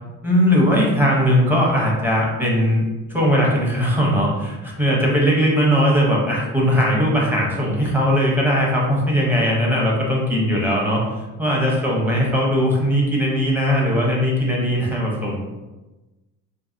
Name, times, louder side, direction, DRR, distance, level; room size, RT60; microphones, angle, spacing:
voice 1, 0.2-2.8 3.1-15.4, equal, 5° right, -3 dB, 0.7 m, -19 dB
2.7 x 2.6 x 2.5 m, 1.1 s
cardioid pair, 120°, 36 cm